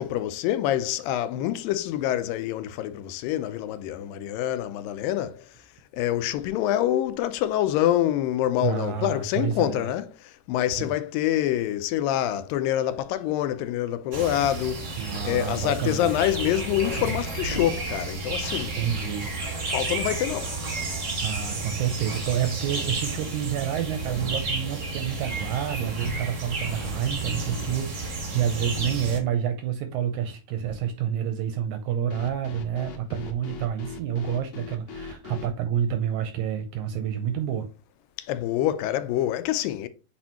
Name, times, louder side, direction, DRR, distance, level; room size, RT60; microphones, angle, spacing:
voice 1, 0.0-5.5 5.9-15.0 15.2-18.8 19.7-20.6 38.2-39.9, left 12 dB, 85° left, 2.3 m, -26 dB
voice 2, 8.6-9.9 10.8-10.9 15.0-16.1 18.8-19.3 21.2-37.7, right 9 dB, 80° right, 1.8 m, -29 dB
sound 1, 14.1-29.2, right 2 dB, 60° right, 0.7 m, -32 dB
sound 2, 17.5-18.1 18.9-19.0 19.8-19.9 20.2-20.5 21.7-21.8 22.0-22.1 22.3-22.4 24.0-24.5 26.8-27.5 28.7-29.4 30.6-31.0, right 1 dB, 35° left, 0.6 m, -41 dB
sound 3, 25.0-25.1 27.3-27.8 32.1-35.5, left 3 dB, 60° left, 2.0 m, -40 dB
7.7 x 4.2 x 2.9 m
omnidirectional pair, 4.0 m